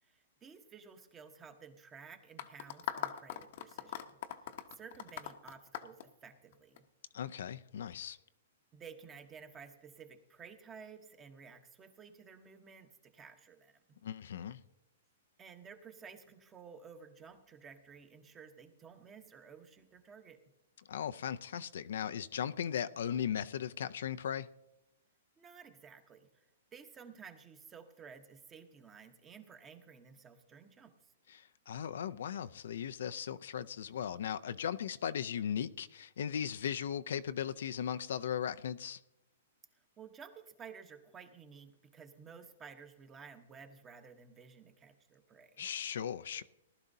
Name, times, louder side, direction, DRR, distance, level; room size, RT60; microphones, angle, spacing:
voice 1, 0.0-4.2 4.4-6.8 8.7-13.7 15.4-20.4 25.4-26.5 26.7-31.1 40.0-45.6, right 6 dB, 15° right, 1.0 m, -54 dB
sound 1, 2.4-6.8, left 11 dB, 50° left, 0.8 m, -41 dB
voice 2, 7.1-8.2 14.0-14.6 20.9-24.5 31.3-39.0 45.6-46.4, left 8 dB, 70° left, 0.4 m, -37 dB
18.5 x 12.0 x 2.7 m
hypercardioid pair, 160°, 0 cm